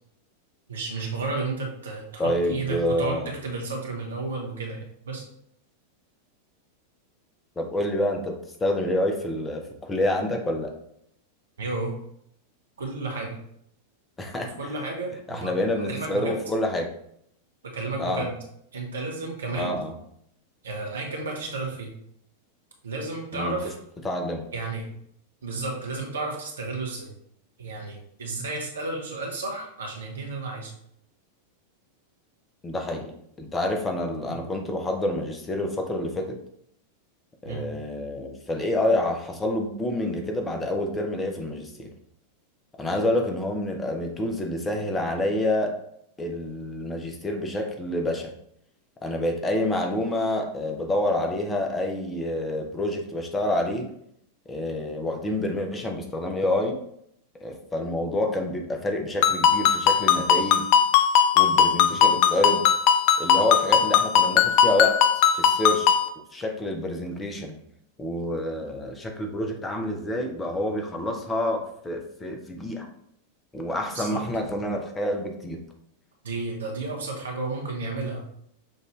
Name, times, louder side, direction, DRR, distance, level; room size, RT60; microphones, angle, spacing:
voice 1, 0.7-5.2 11.6-11.9 12.8-13.4 14.6-16.4 17.6-18.3 18.7-19.7 20.6-21.9 22.8-23.8 24.5-24.9 25.4-27.1 27.6-30.7 34.2-34.4 37.4-37.7 73.9-74.2 76.2-78.2, right 3 dB, 65° right, 0 dB, 1.1 m, -32 dB
voice 2, 2.2-3.3 7.6-10.7 14.2-14.5 15.3-16.9 18.0-18.2 19.5-19.9 23.3-23.6 24.0-24.4 32.6-36.4 37.4-41.9 42.8-45.7 46.2-48.3 49.0-53.9 54.5-56.8 57.4-60.7 61.3-62.6 63.2-65.0 65.3-65.9 66.3-67.6 68.0-72.9 73.5-75.6, left 1 dB, 15° left, 3 dB, 0.8 m, -28 dB
Ringtone, 59.2-66.1, left 8 dB, 45° left, 0.3 m, -19 dB
6.3 x 2.6 x 3.1 m, 0.71 s
figure-of-eight pair, 90°, 0 cm